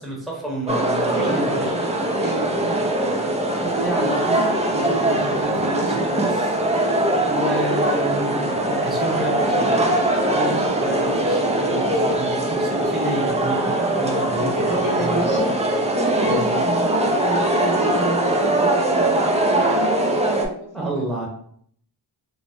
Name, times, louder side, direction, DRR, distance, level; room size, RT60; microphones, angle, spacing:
voice 1, 0.0-1.7 3.5-6.6 7.2-9.9 10.2-15.5 16.2-16.6 20.7-21.3, right 1 dB, ahead, -3 dB, 0.8 m, -29 dB
sound 1, 0.7-20.5, right 1 dB, 15° right, 0.3 m, -21 dB
voice 2, 1.1-1.9 2.2-2.7 10.5-10.7 14.3-15.4 15.9-21.0, right 2 dB, 40° right, -4 dB, 0.8 m, -29 dB
2.6 x 2.0 x 3.3 m, 0.62 s
wide cardioid pair, 85°, 47 cm